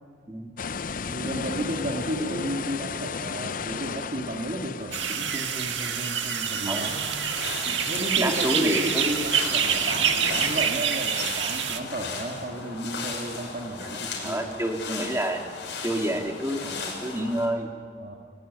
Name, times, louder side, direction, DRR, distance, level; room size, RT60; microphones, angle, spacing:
sound 1, 0.6-10.7, left 5 dB, 50° left, 0.6 m, -36 dB
voice 1, 1.1-7.0 7.9-14.5 18.0-18.2, right 1 dB, 45° right, 1 dB, 2.1 m, -33 dB
voice 2, 2.3-2.6 6.6-7.0 7.6-7.8 8.2-9.3 13.8-13.9 14.2-15.4 15.8-17.7, right 1 dB, 15° right, 3 dB, 2.2 m, -29 dB
sound 2, 4.9-11.8, right 7 dB, 85° right, 1.7 m, -27 dB
sound 3, 6.8-17.5, left 4 dB, 70° left, 6.2 m, -37 dB
29.5 x 15.5 x 9.6 m, 2.1 s
head